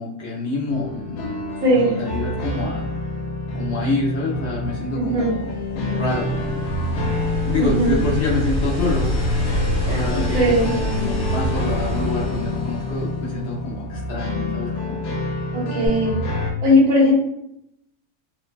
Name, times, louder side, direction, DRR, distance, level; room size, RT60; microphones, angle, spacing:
voice 1, 0.0-1.4 1.7-2.8 3.5-6.6 7.4-9.2 9.8-15.0, left 2 dB, 65° left, -4 dB, 0.7 m, -27 dB
sound 1, 0.7-16.5, left 1 dB, 85° left, 1.1 m, -27 dB
voice 2, 1.6-2.0 4.9-5.3 7.8-7.9 9.8-10.0 10.3-10.7 15.5-16.2 16.6-17.1, left 1 dB, 80° right, -6 dB, 1.5 m, -18 dB
sound 2, 5.2-13.7 15.9-16.0, equal, 10° right, 0.3 m, -27 dB
3.2 x 2.0 x 2.2 m, 0.78 s
omnidirectional pair, 1.5 m